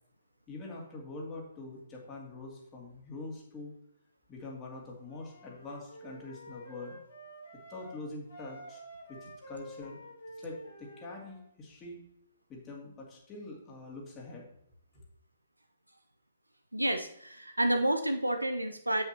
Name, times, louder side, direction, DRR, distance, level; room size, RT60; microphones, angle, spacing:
voice 1, 0.5-3.7 4.3-7.0 7.7-8.8 9.1-10.0 10.3-12.0 12.5-14.5, left 2 dB, 20° left, -2 dB, 2.5 m, -44 dB
Wind instrument woodwind instrument, 5.1-8.0 8.3-11.4, equal, 70° left, 3.5 m, -49 dB
voice 2, 16.7-19.0, right 1 dB, 85° right, 6 dB, 0.7 m, -29 dB
8.3 x 7.9 x 2.9 m, 0.73 s
figure-of-eight pair, 125°, 0 cm